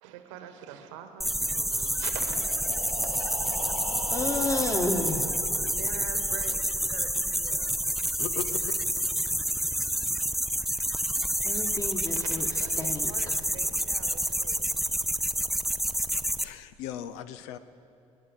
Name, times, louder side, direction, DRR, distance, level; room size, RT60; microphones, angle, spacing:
voice 1, 0.0-2.5 3.0-3.2 5.5-7.9 12.1-14.7, right 9 dB, 65° right, 7 dB, 1.3 m, -44 dB
sound 1, 1.2-16.4, equal, ahead, 0.5 m, -29 dB
Breathing, 2.1-6.0, equal, 85° left, 1.5 m, -40 dB
voice 2, 4.1-5.3 11.4-12.5 12.8-13.3, left 2 dB, 20° left, 3 dB, 1.9 m, -31 dB
voice 3, 8.2-8.7 16.4-17.6, left 10 dB, 60° left, 13 dB, 0.6 m, -37 dB
27.0 x 9.3 x 4.8 m, 2.7 s
figure-of-eight pair, 55°, 17 cm